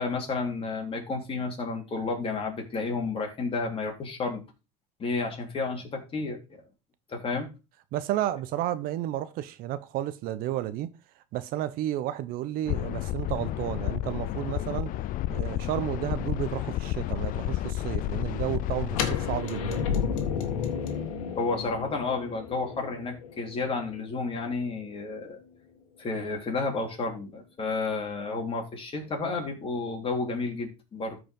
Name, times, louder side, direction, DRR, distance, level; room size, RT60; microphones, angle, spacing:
voice 1, 0.0-4.4 5.0-6.6 7.1-7.5 21.4-25.4 26.0-31.2, left 3 dB, 35° left, 3.6 m, -31 dB
voice 2, 7.9-10.9 11.3-14.9 15.3-19.9, right 13 dB, 60° right, 0.8 m, -32 dB
sound 1, 12.7-19.4, left 14 dB, 55° left, 0.6 m, -31 dB
sound 2, 18.9-24.8, left 7 dB, 85° left, 1.8 m, -32 dB
13.5 x 4.9 x 3.8 m
supercardioid pair, 95°, 17 cm